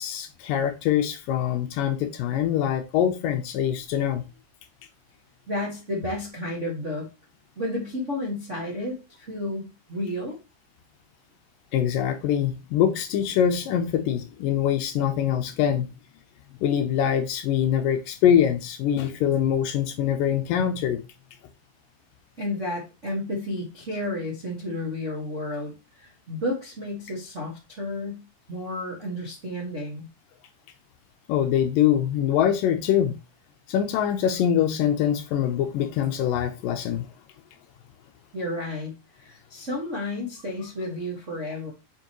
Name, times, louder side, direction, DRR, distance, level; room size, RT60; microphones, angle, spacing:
voice 1, 0.0-4.3 11.7-15.9 16.6-21.0 31.3-33.2 33.7-37.1, left 9 dB, 75° left, 2.1 m, -24 dB
voice 2, 5.5-7.1 7.5-10.4 22.4-28.2 28.5-30.1 38.3-41.7, left 1 dB, 65° right, 0.7 m, -32 dB
7.8 x 5.3 x 3.0 m
omnidirectional pair, 4.5 m